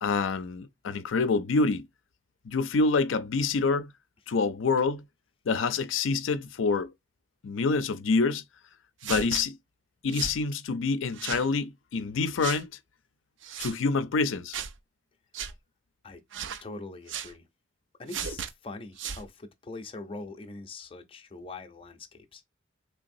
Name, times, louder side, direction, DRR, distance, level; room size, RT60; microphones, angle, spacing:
voice 1, 0.0-1.9 2.5-3.9 4.3-5.0 5.5-6.9 7.4-8.4 9.0-9.6 10.0-12.7 13.6-14.6, left 4 dB, 85° left, 0.5 m, -26 dB
sound 1, 9.0-9.4 10.1-10.4 11.1-11.5 12.4-12.6 13.4-13.8 14.5-14.8 15.3-15.5 16.3-16.6 17.1-17.3 18.1-18.5 19.0-19.3, right 7 dB, 75° right, 0.5 m, -35 dB
voice 2, 16.6-17.5 18.0-22.4, left 3 dB, 30° left, 0.6 m, -42 dB
3.9 x 3.3 x 2.6 m
head